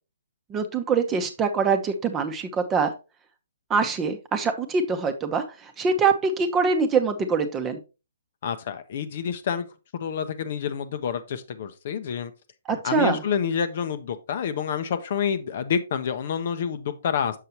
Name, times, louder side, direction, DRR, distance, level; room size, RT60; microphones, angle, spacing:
voice 1, 0.5-2.9 3.7-5.4 5.8-7.8 12.7-13.2, right 5 dB, 15° right, 7 dB, 0.8 m, -24 dB
voice 2, 8.4-9.7 9.9-12.3 12.7-17.4, left 7 dB, 50° left, 11 dB, 0.7 m, -28 dB
6.7 x 6.5 x 2.9 m, 0.29 s
figure-of-eight pair, 130°, 0 cm